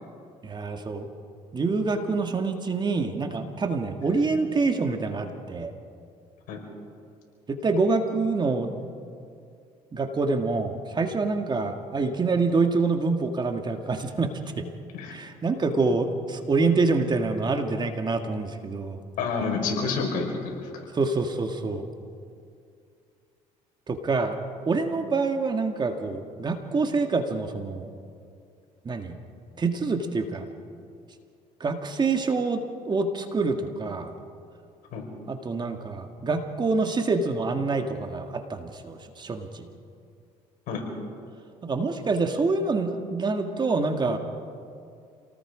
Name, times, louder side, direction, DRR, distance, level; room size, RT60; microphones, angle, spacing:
voice 1, 0.4-1.1 1.5-5.7 7.5-8.7 9.9-14.6 15.1-19.0 20.9-21.9 23.9-27.9 28.9-29.2 29.6-30.5 31.6-34.1 35.3-39.7 41.6-44.2, right 3 dB, 30° right, 5 dB, 2.0 m, -26 dB
voice 2, 19.2-20.7 34.9-35.1 40.7-40.8, left 4 dB, 75° left, 1 dB, 5.2 m, -28 dB
28.0 x 19.0 x 5.1 m, 2.4 s
supercardioid pair, 90°, 14 cm